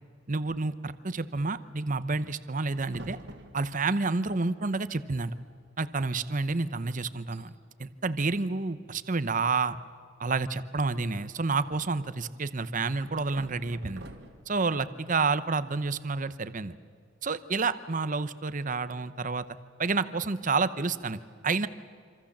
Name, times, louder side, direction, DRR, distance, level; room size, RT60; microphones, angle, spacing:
voice 1, 0.3-3.2 3.5-5.3 5.8-7.5 7.8-9.8 10.2-14.1 14.5-16.7 17.2-19.4 19.8-21.7, right 4 dB, 40° right, 14 dB, 0.8 m, -29 dB
sound 1, 2.9-4.1 4.9-5.0 5.2-5.6 5.9-6.1 6.6-6.7 7.1-7.4 8.5-9.1 11.1-12.0 13.0-14.6, right 1 dB, 60° right, 2.1 m, -48 dB
26.5 x 26.5 x 7.4 m, 2.1 s
head